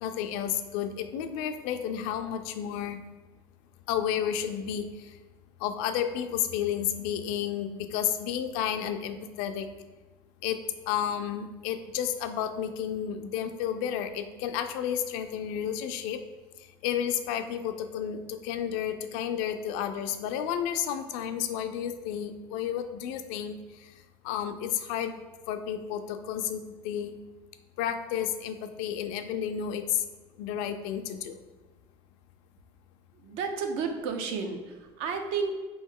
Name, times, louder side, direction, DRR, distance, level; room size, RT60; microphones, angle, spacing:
voice 1, 0.0-3.0 3.9-5.2 5.6-9.7 10.4-16.2 16.6-23.9 24.2-25.2 25.5-27.1 27.8-30.0 30.4-31.4, left 9 dB, 85° left, 8 dB, 0.4 m, -31 dB
voice 2, 33.1-35.6, right 5 dB, 75° right, 5 dB, 0.6 m, -32 dB
3.5 x 3.0 x 3.7 m, 1.2 s
cardioid pair, 135°, 11 cm